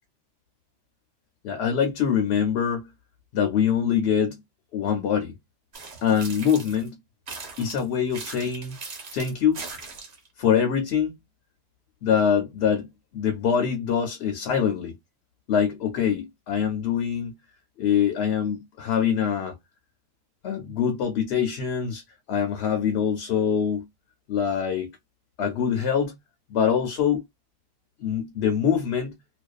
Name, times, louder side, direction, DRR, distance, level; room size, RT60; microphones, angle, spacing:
voice 1, 1.4-2.9 3.3-4.4 4.7-5.3 6.0-7.0 7.6-8.8 9.1-9.6 10.4-11.2 12.0-12.9 13.1-15.0 15.5-17.3 17.8-19.5 20.4-22.0 22.3-23.9 24.3-24.9 25.4-26.2 26.5-27.2 28.0-29.1, left 8 dB, 65° left, 0.8 m, -24 dB
sound 1, 5.7-6.9 7.3-10.3, right 4 dB, 55° right, 1.0 m, -39 dB
2.5 x 2.2 x 2.3 m
omnidirectional pair, 1.3 m